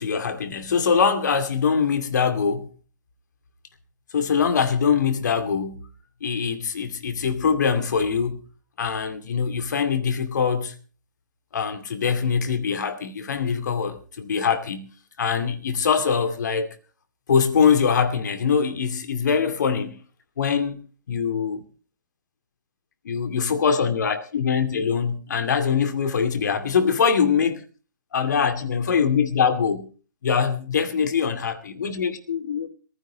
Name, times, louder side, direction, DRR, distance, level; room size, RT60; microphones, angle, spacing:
voice 1, 0.0-2.7 4.1-5.8 6.2-8.4 8.8-10.8 11.5-14.9 15.2-16.7 17.3-20.0 20.4-20.8 21.1-21.6 23.0-27.6 28.1-29.9 30.2-32.7, left 6 dB, 60° left, 2.4 m, -23 dB
21.5 x 15.0 x 3.0 m
figure-of-eight pair, 120°, 11 cm